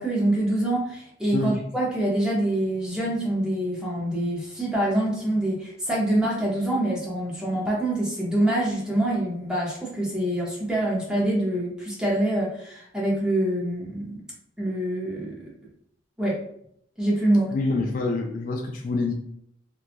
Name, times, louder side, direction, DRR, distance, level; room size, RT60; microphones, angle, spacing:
voice 1, 0.0-14.2 14.6-15.5 16.2-16.4 17.0-17.5, right 1 dB, 5° right, -5 dB, 0.7 m, -25 dB
voice 2, 17.5-19.1, left 3 dB, 45° left, 2 dB, 0.3 m, -26 dB
2.9 x 2.3 x 2.4 m, 0.71 s
head